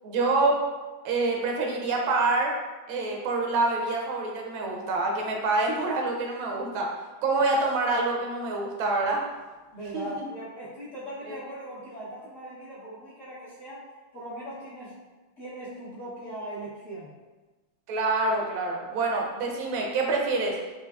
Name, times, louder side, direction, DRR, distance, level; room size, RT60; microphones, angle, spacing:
voice 1, 0.0-0.6 1.0-2.5 2.9-6.9 7.2-9.2 9.9-10.0 11.3-11.4 17.9-20.6, right 3 dB, 75° right, 0 dB, 1.3 m, -26 dB
voice 2, 9.7-13.8 14.1-14.9 15.4-17.1, equal, 50° left, -11 dB, 1.0 m, -39 dB
4.5 x 2.7 x 2.3 m, 1.2 s
omnidirectional pair, 2.3 m